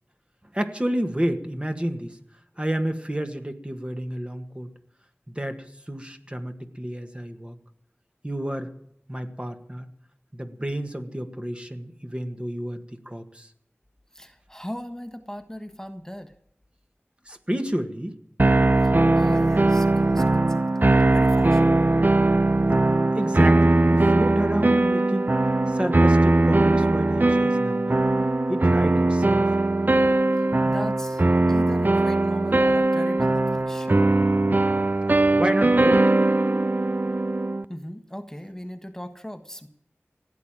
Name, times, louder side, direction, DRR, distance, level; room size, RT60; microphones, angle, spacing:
voice 1, 0.5-2.2 2.6-4.7 5.3-7.5 8.2-8.7 9.1-9.9 10.3-13.5 17.3-18.2 23.2-25.3 25.7-28.0 28.5-29.5 35.3-36.0, right 1 dB, 25° right, 6 dB, 1.7 m, -30 dB
voice 2, 14.1-16.3 18.8-22.0 30.6-34.2 37.7-39.7, equal, 10° left, 8 dB, 1.3 m, -38 dB
sound 1, 18.4-37.6, right 2 dB, 45° right, 0.6 m, -20 dB
16.5 x 9.5 x 8.8 m, 0.74 s
wide cardioid pair, 50°, 4 cm